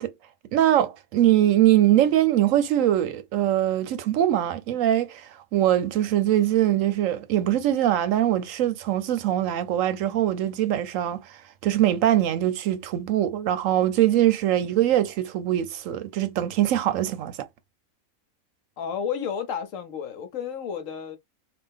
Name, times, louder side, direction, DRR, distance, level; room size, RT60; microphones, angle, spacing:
voice 1, 0.5-17.5, right 12 dB, 70° right, 0.9 m, -22 dB
voice 2, 18.8-21.2, left 7 dB, 70° left, 1.1 m, -31 dB
3.4 x 2.4 x 3.5 m
omnidirectional pair, 1.5 m